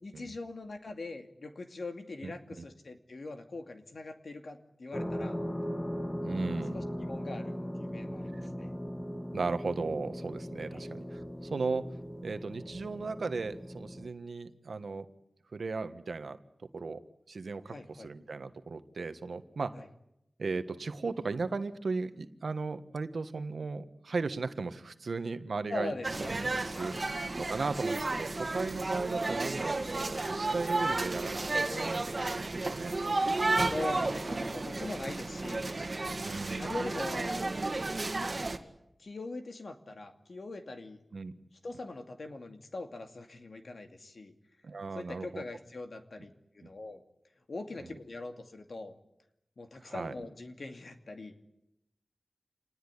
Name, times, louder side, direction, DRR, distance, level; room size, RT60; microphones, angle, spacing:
voice 1, 0.0-5.4 6.7-8.7 10.6-10.8 17.7-18.1 19.7-19.8 25.7-26.3 26.7-27.1 33.6-35.7 36.6-37.5 39.0-41.0 41.6-44.3 44.9-47.0 47.5-48.9 49.6-51.3, left 2 dB, 60° left, 6 dB, 2.5 m, -42 dB
sound 1, 4.9-14.1, equal, 15° left, 1.9 m, -38 dB
voice 2, 6.2-6.8 8.3-8.4 9.3-11.9 12.2-15.1 15.5-16.4 16.7-17.0 17.3-19.8 20.4-25.9 26.3-32.1 32.4-32.9 36.2-36.8 41.1-41.3 44.6-45.4 49.8-50.1, right 4 dB, 75° right, 10 dB, 1.4 m, -36 dB
sound 2, 26.0-38.6, right 2 dB, 40° right, 2.1 m, -32 dB
27.0 x 19.5 x 10.0 m, 0.86 s
wide cardioid pair, 95°, 0 cm